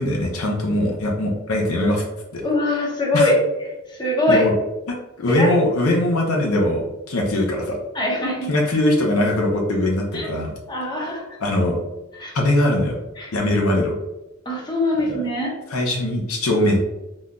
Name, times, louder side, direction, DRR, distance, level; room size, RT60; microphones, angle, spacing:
voice 1, 0.0-2.0 2.3-2.4 3.1-3.3 4.3-4.5 4.9-7.8 8.5-10.5 11.4-11.8 12.3-13.0 13.3-13.9 15.0-15.2 15.7-16.8, left 1 dB, 90° left, 0 dB, 0.6 m, -21 dB
voice 2, 2.4-3.3 3.9-4.4 5.3-5.5 7.9-8.5 10.1-10.3 10.7-11.2 12.2-12.3 13.2-13.3 14.5-15.5, left 1 dB, 20° left, -3 dB, 0.7 m, -22 dB
3.7 x 2.5 x 2.2 m, 1.0 s
head